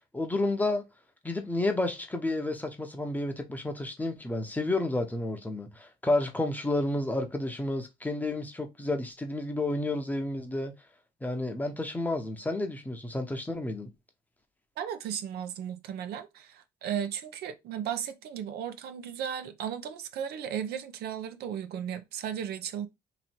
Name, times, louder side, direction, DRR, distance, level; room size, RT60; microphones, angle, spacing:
voice 1, 0.1-0.8 1.2-10.7 11.2-13.9, left 2 dB, 10° left, 0.8 m, -31 dB
voice 2, 14.8-22.9, right 9 dB, 70° right, 0.6 m, -35 dB
3.0 x 2.7 x 4.3 m
cardioid pair, 110°, 17 cm